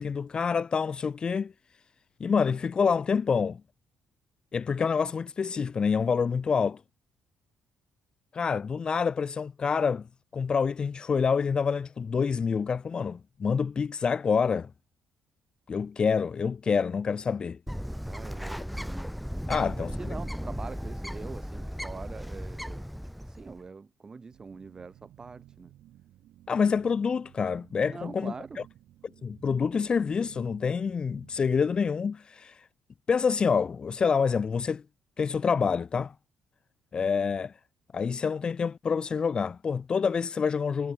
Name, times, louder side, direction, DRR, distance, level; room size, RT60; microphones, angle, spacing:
voice 1, 0.0-1.5 2.2-3.6 4.5-6.8 8.3-10.0 10.3-14.7 15.7-17.6 19.5-19.9 26.5-28.3 29.2-32.6 33.1-34.8 35.2-36.1 36.9-37.5 37.9-40.9, left 6 dB, 30° left, 0.7 m, -27 dB
Bird, 17.7-23.6, equal, ahead, 2.1 m, -36 dB
voice 2, 18.1-19.1 19.5-22.9 23.2-25.7 27.9-28.6, right 4 dB, 25° right, 4.2 m, -44 dB
sound 1, 24.3-32.0, right 13 dB, 75° right, 6.3 m, -55 dB
cardioid pair, 130°, 3 cm